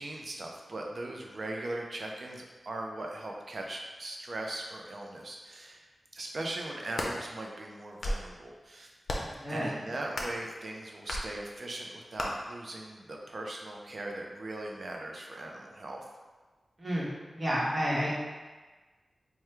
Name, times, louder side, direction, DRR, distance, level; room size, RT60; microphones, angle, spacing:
voice 1, 0.0-5.8 6.1-8.9 9.5-16.0, right 1 dB, 60° right, 0 dB, 0.5 m, -39 dB
sound 1, 6.7-7.1 7.8-8.3 9.0-9.4 10.1-10.4 11.1-11.3 12.2-12.3, left 1 dB, 70° left, 0.5 m, -34 dB
voice 2, 9.2-9.7 16.8-17.1 17.3-18.1, equal, 40° right, -6 dB, 1.1 m, -30 dB
3.0 x 2.2 x 3.4 m, 1.3 s
cardioid pair, 50°, 0 cm